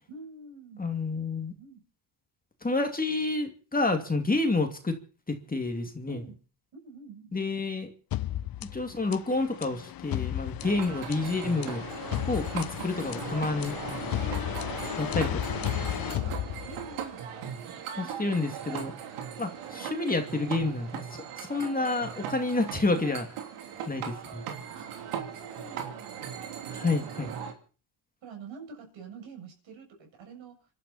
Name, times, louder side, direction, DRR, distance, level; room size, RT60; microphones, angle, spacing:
voice 1, 0.1-0.8 1.6-1.8 6.1-6.4 6.7-7.3 14.3-14.4 16.0-16.4 16.7-17.2 18.0-18.4 19.7-19.9 24.7-26.2 28.2-30.7, right 4 dB, 65° right, 3 dB, 7.4 m, -47 dB
voice 2, 0.8-1.5 2.6-5.0 5.3-6.2 7.3-7.9 8.7-11.8 12.3-13.7 15.0-15.6 18.0-18.9 19.4-20.9 21.4-23.3 23.9-24.4 26.7-27.3, left 3 dB, 15° left, 5 dB, 2.7 m, -29 dB
sound 1, 8.1-17.0, left 13 dB, 45° left, 0.7 m, -34 dB
sound 2, 10.6-27.5, right 8 dB, 85° right, 3.4 m, -39 dB
26.5 x 12.0 x 4.3 m, 0.38 s
cardioid pair, 85°, 49 cm